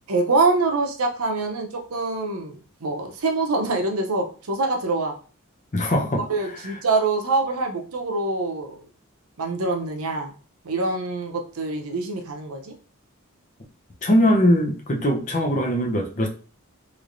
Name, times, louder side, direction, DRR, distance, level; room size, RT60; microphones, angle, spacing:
voice 1, 0.1-5.1 6.2-8.8 9.4-10.3 10.6-12.7, right 3 dB, 80° right, 3 dB, 0.7 m, -25 dB
voice 2, 5.7-6.3 14.0-16.3, equal, 35° left, 1 dB, 0.6 m, -21 dB
3.1 x 3.1 x 2.5 m, 0.38 s
head